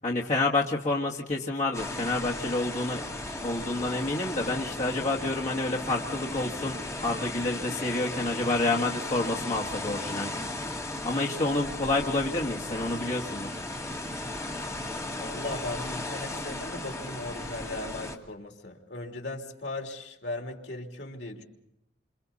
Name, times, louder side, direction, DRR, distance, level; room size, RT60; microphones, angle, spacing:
voice 1, 0.0-3.0 3.4-10.3 11.0-13.6, left 2 dB, 45° left, -2 dB, 1.8 m, -29 dB
sound 1, 1.7-18.2, left 2 dB, 20° left, 2.5 m, -36 dB
voice 2, 15.2-21.4, left 2 dB, 75° left, 1 dB, 3.3 m, -37 dB
29.5 x 27.0 x 4.2 m, 0.80 s
head